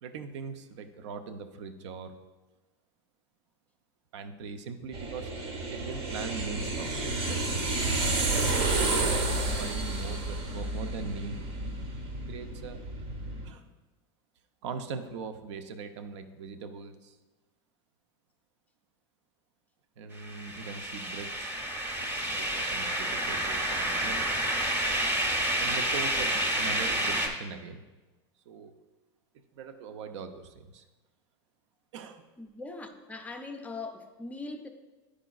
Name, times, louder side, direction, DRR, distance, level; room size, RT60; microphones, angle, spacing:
voice 1, 0.0-2.2 4.1-5.3 5.7-7.9 8.3-11.4 12.3-12.8 13.4-13.6 14.6-17.2 20.0-21.6 22.0-24.2 25.6-27.8 28.5-28.7 29.6-30.8 31.9-32.2, right 5 dB, 85° right, 8 dB, 0.5 m, -41 dB
sound 1, 4.9-13.5, right 2 dB, 65° right, 1.0 m, -31 dB
sound 2, 20.2-27.3, right 1 dB, 15° right, 0.8 m, -29 dB
voice 2, 32.4-34.7, left 3 dB, 10° left, 5 dB, 0.4 m, -40 dB
9.9 x 4.9 x 2.3 m, 1.2 s
supercardioid pair, 140°, 15 cm